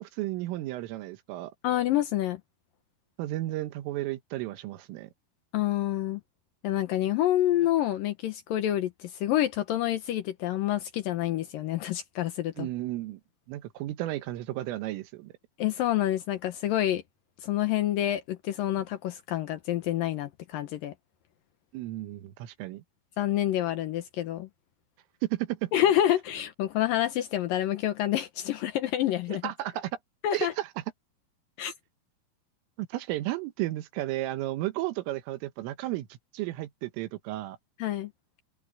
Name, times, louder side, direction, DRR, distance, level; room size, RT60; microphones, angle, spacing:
voice 1, 0.0-1.5 3.2-5.1 12.6-13.2 13.5-15.3 21.7-22.8 25.2-25.7 29.3-29.9 30.3-30.7 32.8-37.6, right 16 dB, 90° right, 3.9 m, -33 dB
voice 2, 1.6-2.4 5.5-6.2 6.6-12.7 15.6-17.0 17.4-20.9 23.2-24.5 25.7-29.4 30.2-30.5 31.6-31.7 37.8-38.1, left 12 dB, 90° left, 1.9 m, -28 dB
omnidirectional pair, 5.7 m